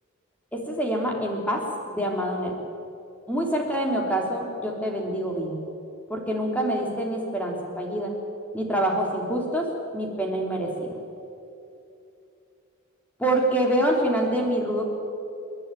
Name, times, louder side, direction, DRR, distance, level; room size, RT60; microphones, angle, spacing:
voice 1, 0.5-2.6 3.3-5.6 6.1-8.1 8.5-9.7 9.9-10.9 13.2-14.9, right 1 dB, 5° left, 0 dB, 3.1 m, -26 dB
29.5 x 11.0 x 9.1 m, 2.8 s
head